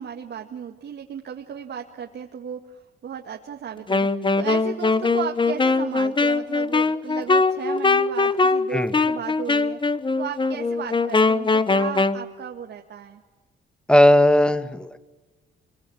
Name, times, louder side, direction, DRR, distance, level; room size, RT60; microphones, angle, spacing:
voice 1, 0.0-9.8 10.2-13.2, right 8 dB, 60° right, 2 dB, 1.9 m, -35 dB
Wind instrument woodwind instrument, 3.9-12.2, left 3 dB, 25° left, 1.2 m, -21 dB
voice 2, 13.9-15.0, left 1 dB, 5° left, 11 dB, 1.8 m, -17 dB
26.5 x 24.0 x 8.8 m, 1.2 s
cardioid pair, 90°, 20 cm